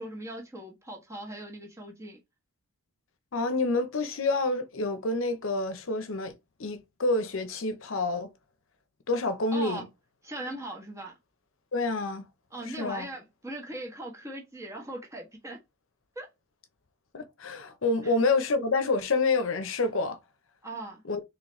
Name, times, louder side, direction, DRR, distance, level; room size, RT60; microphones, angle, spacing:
voice 1, 0.0-2.2 9.5-9.9 10.2-11.1 12.5-15.6 16.1-16.3 20.6-21.0, right 1 dB, 15° right, 1.2 m, -39 dB
voice 2, 3.3-6.3 6.6-8.3 9.1-9.9 11.7-12.3 12.7-13.1 17.1-20.2 21.1-21.2, left 3 dB, 65° left, 0.7 m, -28 dB
4.0 x 3.1 x 3.1 m
head